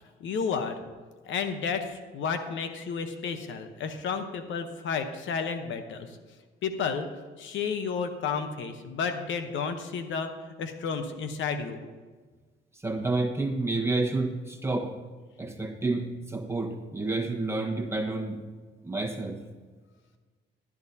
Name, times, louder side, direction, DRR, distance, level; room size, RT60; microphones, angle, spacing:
voice 1, 0.2-0.8 1.3-6.2 6.6-7.1 7.4-10.3 10.6-11.8, left 6 dB, 75° left, 7 dB, 1.0 m, -31 dB
voice 2, 12.8-14.9 15.4-18.4 18.8-19.4, right 2 dB, 15° right, 3 dB, 1.3 m, -29 dB
12.0 x 12.0 x 2.8 m, 1.4 s
cardioid pair, 90°, 20 cm